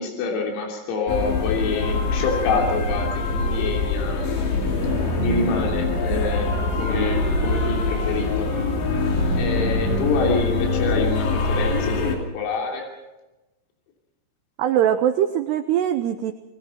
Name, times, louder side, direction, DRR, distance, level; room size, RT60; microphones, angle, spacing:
voice 1, 0.0-4.4 5.2-6.5 6.8-8.5 9.3-12.0 12.3-12.9, left 4 dB, 85° left, 0 dB, 5.9 m, -26 dB
sound 1, 1.1-12.2, left 2 dB, 60° left, 5.1 m, -23 dB
voice 2, 14.6-16.3, right 10 dB, 85° right, 8 dB, 2.4 m, -21 dB
28.5 x 21.5 x 4.5 m, 1.1 s
omnidirectional pair, 5.9 m